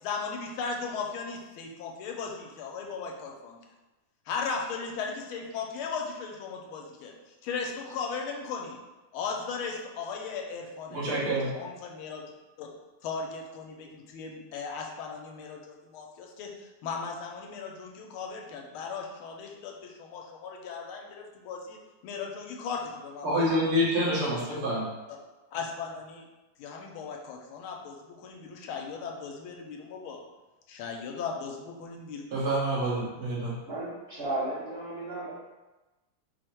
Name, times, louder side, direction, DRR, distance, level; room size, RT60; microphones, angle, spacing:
voice 1, 0.0-3.6 4.3-8.8 9.1-12.2 12.6-12.7 13.0-23.6 24.0-24.6 25.5-26.3 26.6-30.2 30.7-32.3, left 5 dB, 85° left, 1 dB, 1.5 m, -37 dB
voice 2, 10.9-11.5 23.2-24.9 32.3-33.6, equal, 85° right, -7 dB, 2.3 m, -27 dB
voice 3, 33.7-35.3, right 2 dB, 60° right, -7 dB, 0.6 m, -34 dB
5.0 x 2.1 x 4.4 m, 1.1 s
omnidirectional pair, 2.3 m